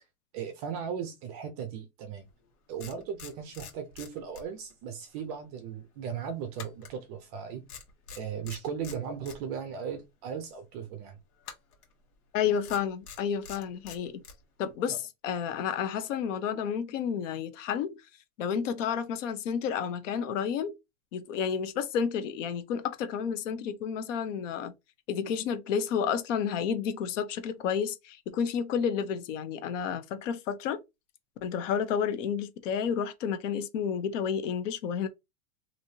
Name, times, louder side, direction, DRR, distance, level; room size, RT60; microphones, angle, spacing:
voice 1, 0.3-2.3 2.7-7.6 8.2-11.2 14.9-15.0, right 7 dB, 30° right, 0.4 m, -37 dB
sound 1, 2.3-2.4 2.8-4.8 5.1-5.3 6.6-7.4 7.7-9.4 11.4-11.9 12.6-14.4, left 6 dB, 85° left, 1.5 m, -46 dB
voice 2, 12.3-14.2 14.6-18.0 18.4-20.8 21.1-24.7 25.1-30.8 31.4-35.1, left 7 dB, 55° left, 0.8 m, -31 dB
3.2 x 2.7 x 2.7 m
supercardioid pair, 155°, 44 cm